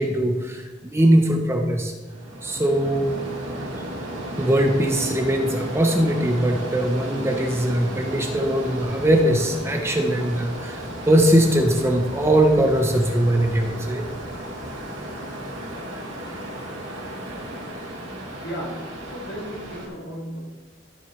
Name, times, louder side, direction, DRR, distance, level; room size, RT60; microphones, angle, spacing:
voice 1, 0.0-1.9 2.4-3.1 4.4-14.1, right 1 dB, 15° right, 3 dB, 0.7 m, -21 dB
sound 1, 2.1-19.9, right 1 dB, 70° right, 2.9 m, -34 dB
voice 2, 18.4-20.4, equal, 55° left, -1 dB, 2.0 m, -35 dB
14.0 x 7.0 x 3.2 m, 1.3 s
head